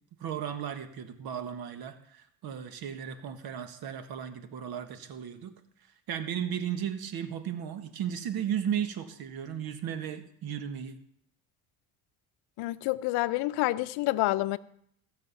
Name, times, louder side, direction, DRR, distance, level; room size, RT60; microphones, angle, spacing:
voice 1, 0.2-5.5 6.1-11.0, right 9 dB, 65° right, 1.5 m, -35 dB
voice 2, 12.6-14.6, left 18 dB, 75° left, 0.6 m, -28 dB
15.5 x 6.6 x 5.5 m
supercardioid pair, 80°, 40 cm